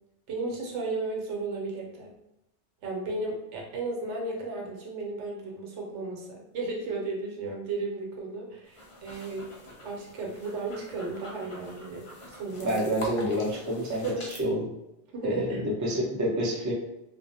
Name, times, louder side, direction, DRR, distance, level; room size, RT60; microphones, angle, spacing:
voice 1, 0.3-2.1 2.8-9.5 9.8-12.8 14.0-14.3 15.1-15.6, right 3 dB, 85° right, -1 dB, 1.0 m, -34 dB
sound 1, 8.7-14.4, left 1 dB, 55° left, 0.3 m, -45 dB
voice 2, 12.6-14.1 14.4-14.7 15.2-16.7, equal, 30° right, -3 dB, 0.3 m, -28 dB
2.5 x 2.0 x 2.6 m, 0.88 s
omnidirectional pair, 1.2 m